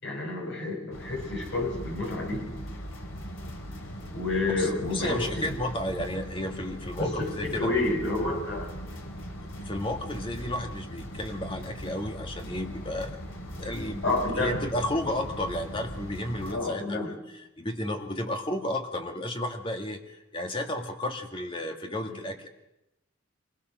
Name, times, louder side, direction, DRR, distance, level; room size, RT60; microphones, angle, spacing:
voice 1, 0.0-2.4 4.1-5.6 6.0-6.1 7.0-8.7 14.0-14.6 16.5-17.1 22.1-22.2, left 2 dB, 60° left, 0 dB, 7.6 m, -29 dB
sound 1, 0.9-16.5, equal, 80° left, 3.9 m, -40 dB
voice 2, 4.6-7.7 9.6-13.2 13.6-14.1 14.3-17.1 17.6-22.5, left 1 dB, 25° left, 4 dB, 2.1 m, -32 dB
25.5 x 20.5 x 6.5 m, 0.88 s
head